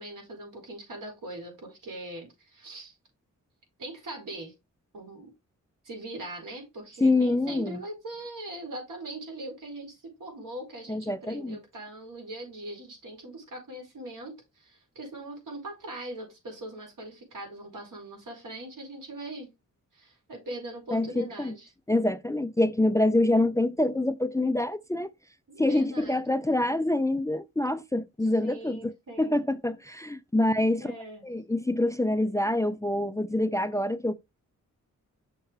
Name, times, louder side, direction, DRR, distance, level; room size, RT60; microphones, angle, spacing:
voice 1, 0.0-2.9 3.8-4.5 4.9-5.3 5.8-19.5 19.9-21.7 25.5-26.3 28.2-29.4 30.8-31.2, right 1 dB, 80° right, 4.7 m, -41 dB
voice 2, 7.0-7.8 10.9-11.6 20.9-21.5 21.9-25.1 25.6-28.9 29.2-30.9 31.2-34.1, left 1 dB, 10° left, 0.4 m, -26 dB
6.5 x 4.4 x 4.7 m
wide cardioid pair, 90°, 31 cm